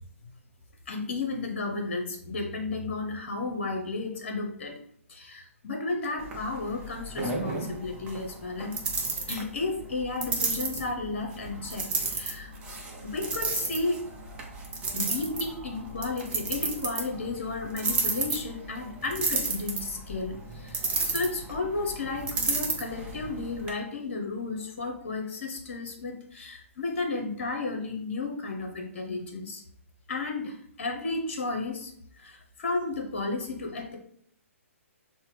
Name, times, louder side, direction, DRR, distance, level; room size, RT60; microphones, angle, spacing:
voice 1, 0.9-4.8 5.1-8.8 9.3-12.5 13.0-14.1 14.9-29.6 30.1-34.0, left 3 dB, 50° left, 3 dB, 0.8 m, -33 dB
sound 1, 6.2-23.7, right 3 dB, 15° right, 0.6 m, -33 dB
5.5 x 2.1 x 3.2 m, 0.67 s
figure-of-eight pair, 125°, 8 cm